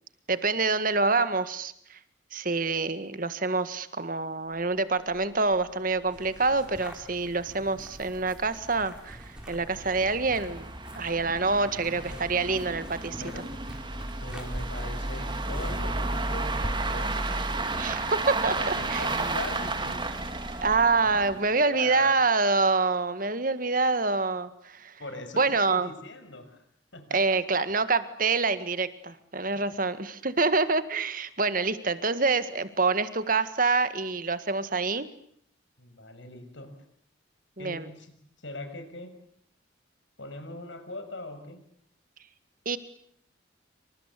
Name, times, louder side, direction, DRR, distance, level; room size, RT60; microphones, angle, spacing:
voice 1, 0.3-2.0 2.3-13.2 17.8-18.5 18.9-19.1 20.6-24.9 25.4-25.9 27.1-35.1 37.6-37.9 42.7-42.8, right 3 dB, 45° right, 12 dB, 1.8 m, -26 dB
sound 1, 5.2-5.3 5.5-5.6 6.1-6.2 6.5-6.6 7.2-21.6, right 2 dB, 25° right, 2.7 m, -33 dB
sound 2, 6.1-17.2, equal, 5° right, 4.1 m, -44 dB
voice 2, 11.6-12.1 13.2-13.6 14.2-17.4 18.5-20.0 21.0-21.3 21.6-22.2 25.0-26.6 26.9-27.4 29.5-29.6 35.8-36.8 37.6-39.2 40.2-41.6, left 2 dB, 70° left, 8 dB, 6.2 m, -41 dB
27.5 x 26.0 x 8.4 m, 0.67 s
head